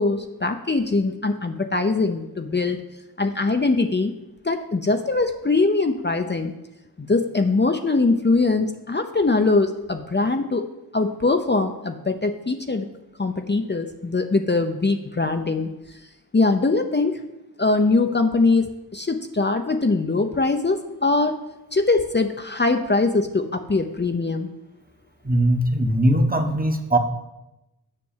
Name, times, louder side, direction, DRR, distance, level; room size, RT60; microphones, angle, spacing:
voice 1, 0.0-2.8 3.2-4.1 4.4-6.5 7.0-10.7 10.9-12.9 13.2-15.7 16.3-17.2 17.6-18.7 18.9-21.3 21.7-24.5, left 3 dB, 30° left, 6 dB, 0.8 m, -22 dB
voice 2, 25.2-27.0, right 1 dB, 25° right, 5 dB, 1.2 m, -20 dB
7.7 x 6.0 x 7.4 m, 0.96 s
cardioid pair, 50°, 37 cm